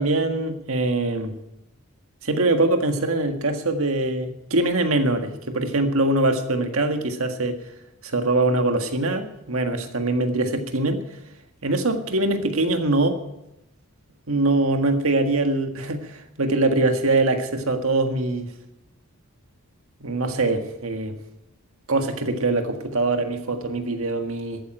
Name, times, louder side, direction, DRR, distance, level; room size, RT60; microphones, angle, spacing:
voice 1, 0.0-1.3 2.2-7.6 8.0-11.0 11.6-13.2 14.3-18.5 20.0-21.2 21.9-24.6, right 2 dB, 70° right, 6 dB, 1.7 m, -23 dB
14.0 x 9.2 x 9.0 m, 0.88 s
head